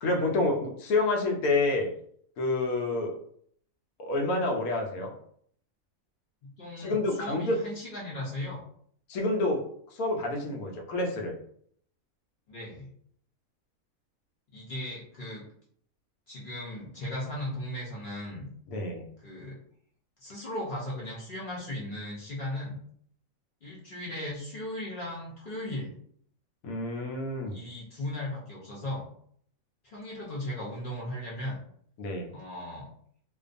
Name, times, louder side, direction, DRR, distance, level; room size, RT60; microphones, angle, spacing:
voice 1, 0.0-1.9 2.4-3.2 4.0-5.1 6.8-7.6 9.1-11.3 18.7-19.1 26.6-27.6 32.0-32.3, left 2 dB, 85° left, 2 dB, 1.1 m, -28 dB
voice 2, 6.4-8.6 12.5-12.9 14.5-15.4 16.3-18.5 19.2-19.6 20.2-22.8 23.6-25.9 27.5-29.0 29.8-31.6 32.3-32.9, left 1 dB, 50° left, -5 dB, 0.7 m, -37 dB
2.5 x 2.3 x 2.5 m, 0.63 s
omnidirectional pair, 1.5 m